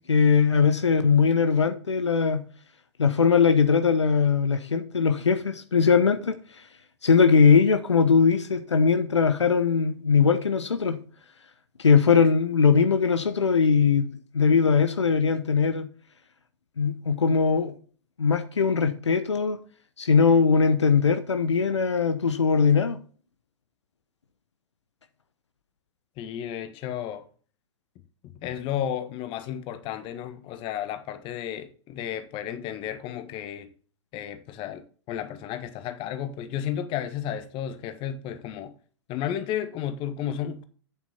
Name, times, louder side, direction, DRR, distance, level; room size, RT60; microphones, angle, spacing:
voice 1, 0.1-2.4 3.0-6.7 7.0-11.0 11.8-15.9 16.8-17.7 18.2-19.6 20.0-23.0, left 5 dB, 80° left, 1.0 m, -21 dB
voice 2, 26.2-27.2 28.2-33.7 34.1-38.7 39.1-40.7, left 10 dB, 35° left, 1.4 m, -33 dB
8.8 x 7.4 x 4.3 m
figure-of-eight pair, 100°, 15 cm